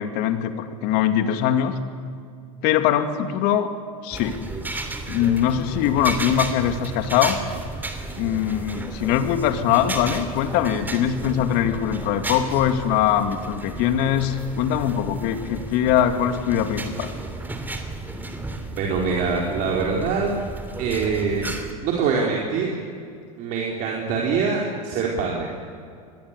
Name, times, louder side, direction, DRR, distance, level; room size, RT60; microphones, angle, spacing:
voice 1, 0.0-1.7 2.6-3.7 4.0-4.4 5.1-7.4 8.2-17.1, left 10 dB, 55° left, 8 dB, 2.5 m, -22 dB
sound 1, 4.1-21.7, right 2 dB, 10° right, 2.9 m, -33 dB
voice 2, 18.8-20.4 20.8-21.5 21.8-22.7 23.4-25.5, right 5 dB, 45° right, -1 dB, 4.2 m, -24 dB
25.5 x 20.5 x 8.3 m, 2.3 s
hypercardioid pair, 110°, 19 cm